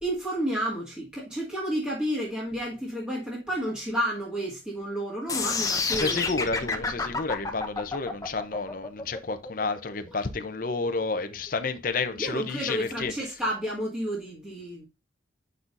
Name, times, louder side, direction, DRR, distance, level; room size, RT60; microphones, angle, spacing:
voice 1, 0.0-6.3 6.6-6.9 10.1-10.2 12.1-14.9, equal, 5° right, 1.8 m, -31 dB
sound 1, 5.3-11.3, left 4 dB, 20° left, 0.8 m, -30 dB
voice 2, 5.9-13.1, left 4 dB, 45° left, 0.7 m, -30 dB
8.3 x 5.5 x 2.5 m
head